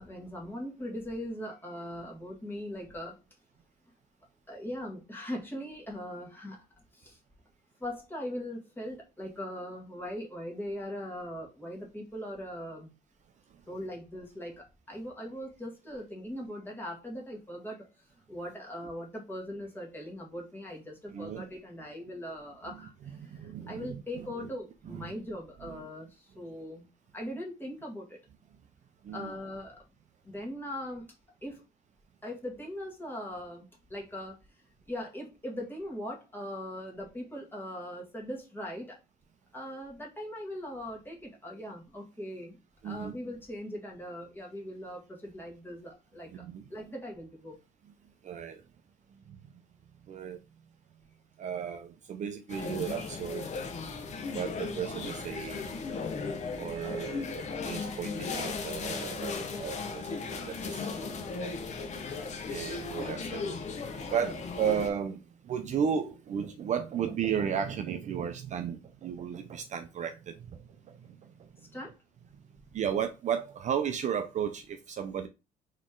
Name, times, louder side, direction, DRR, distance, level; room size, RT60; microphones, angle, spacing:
voice 1, 0.0-3.2 4.5-6.6 6.9-7.2 7.8-12.9 13.7-17.9 18.3-26.9 27.1-28.2 29.1-29.8 30.2-31.1 31.4-31.6 32.2-33.6 33.9-34.4 34.9-39.0 39.5-42.6 42.8-46.4 46.7-47.6 56.8-57.3 71.7-71.9, equal, 10° left, 1.7 m, -40 dB
voice 2, 21.1-21.4 23.2-24.3 24.9-25.2 29.0-29.3 42.8-43.1 46.3-46.6 48.2-48.6 49.3-49.4 50.1-50.4 51.4-53.4 54.3-55.7 56.6-61.5 62.5-63.6 64.1-70.6 70.9-71.5 72.7-75.3, right 8 dB, 45° right, 0.5 m, -34 dB
sound 1, 52.5-64.9, left 4 dB, 45° left, 0.9 m, -36 dB
4.1 x 3.1 x 3.7 m
cardioid pair, 110°, 17 cm